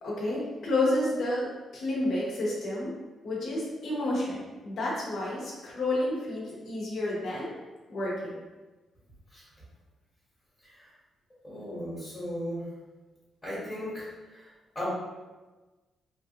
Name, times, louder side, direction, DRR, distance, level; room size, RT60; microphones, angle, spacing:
voice 1, 0.0-1.5 1.7-2.9 3.2-7.5 7.9-8.1, left 1 dB, 60° left, -5 dB, 0.9 m, -30 dB
voice 2, 11.4-12.6 13.4-14.0 14.7-14.8, equal, 15° left, -10 dB, 1.3 m, -35 dB
3.1 x 2.4 x 2.8 m, 1.2 s
cardioid pair, 130°, 0 cm